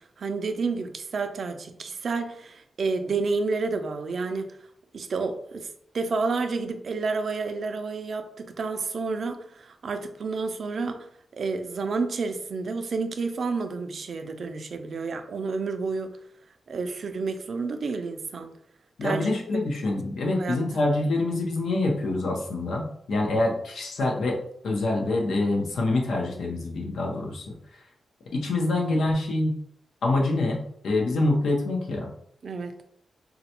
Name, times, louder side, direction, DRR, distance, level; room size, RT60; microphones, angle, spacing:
voice 1, 0.2-4.5 4.9-5.7 5.9-11.0 11.4-16.1 16.7-18.5 19.0-19.3 20.4-20.6 32.4-32.7, right 4 dB, 50° right, 7 dB, 0.3 m, -30 dB
voice 2, 19.0-24.4 24.6-27.4 28.3-29.5 30.0-30.6 30.8-32.1, left 2 dB, 85° left, -1 dB, 0.8 m, -25 dB
3.9 x 2.2 x 2.9 m, 0.70 s
wide cardioid pair, 170°, 0 cm